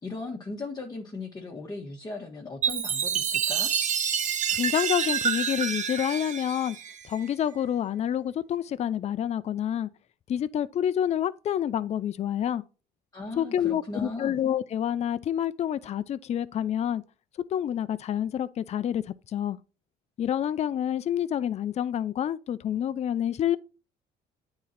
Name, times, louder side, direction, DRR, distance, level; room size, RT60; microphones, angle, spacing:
voice 1, 0.0-3.7 13.1-14.4, left 3 dB, 20° left, 1.2 m, -38 dB
Chime, 2.6-7.3, right 7 dB, 45° right, 0.8 m, -28 dB
voice 2, 4.5-6.8 7.0-9.9 10.3-12.6 13.4-17.0 17.5-19.0 19.3-19.6 20.2-23.6, left 10 dB, 40° left, 0.4 m, -28 dB
9.2 x 3.8 x 4.2 m
cardioid pair, 110°, 17 cm